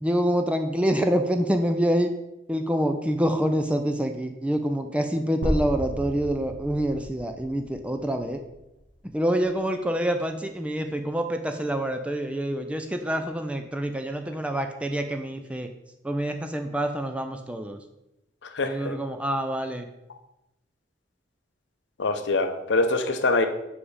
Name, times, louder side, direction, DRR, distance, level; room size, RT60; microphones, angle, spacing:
voice 1, 0.0-2.1 2.5-8.4 9.1-15.7 16.0-17.8 18.6-19.9, equal, 5° right, 6 dB, 0.4 m, -26 dB
sound 1, 5.4-9.4, equal, 65° right, 1.6 m, -34 dB
voice 2, 18.5-18.9 22.0-23.5, left 3 dB, 60° left, 7 dB, 0.6 m, -24 dB
5.0 x 5.0 x 4.8 m, 0.89 s
head